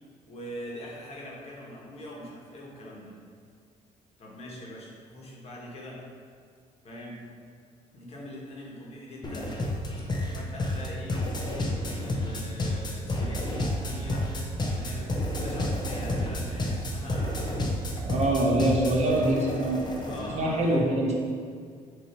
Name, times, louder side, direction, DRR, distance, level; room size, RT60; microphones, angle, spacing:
voice 1, 0.3-3.1 4.2-6.0 6.8-7.1 7.9-9.5 10.3-11.8 12.0-14.3 14.7-17.8 20.1-20.8, left 1 dB, 45° left, -4 dB, 1.5 m, -42 dB
sound 1, 9.2-20.3, left 1 dB, 30° left, 0.8 m, -30 dB
voice 2, 18.0-19.8 20.3-21.2, right 1 dB, 50° right, -2 dB, 1.2 m, -24 dB
6.8 x 3.0 x 4.6 m, 2.1 s
cardioid pair, 115°, 15 cm